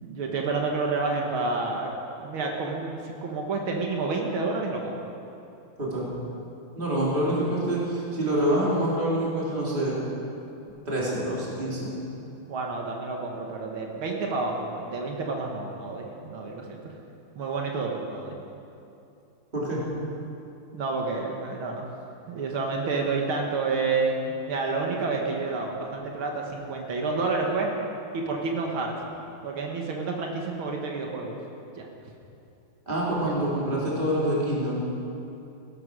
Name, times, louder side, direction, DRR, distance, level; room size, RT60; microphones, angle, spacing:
voice 1, 0.0-5.1 12.5-16.9 17.4-18.4 20.7-21.9 22.3-27.7 28.1-29.0 29.4-31.4 31.8-31.9 33.2-33.4, right 3 dB, 80° right, 1 dB, 2.2 m, -29 dB
voice 2, 5.8-6.1 6.7-10.0 10.8-11.9 19.5-19.8 32.9-34.8, right 1 dB, 25° right, -6 dB, 3.4 m, -26 dB
16.5 x 12.0 x 6.3 m, 2.8 s
omnidirectional pair, 2.3 m